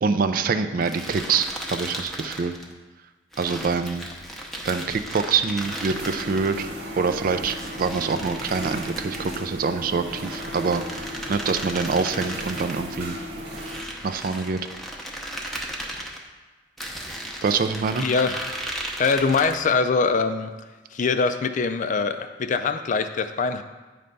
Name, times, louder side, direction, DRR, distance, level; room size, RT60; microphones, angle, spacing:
voice 1, 0.0-2.5 3.4-4.1 4.6-6.7 7.0-13.2 14.0-14.6 17.4-18.1, right 5 dB, 50° right, 9 dB, 0.4 m, -25 dB
sound 1, 0.8-2.7 3.3-6.6 7.4-9.5 10.1-12.8 13.5-16.2 16.8-19.8, equal, ahead, 0.7 m, -36 dB
sound 2, 5.6-13.9, equal, 75° right, 1.4 m, -36 dB
voice 2, 18.0-18.4 19.0-20.5 20.9-23.6, left 4 dB, 45° left, 9 dB, 0.4 m, -23 dB
8.7 x 3.3 x 5.3 m, 1.3 s
head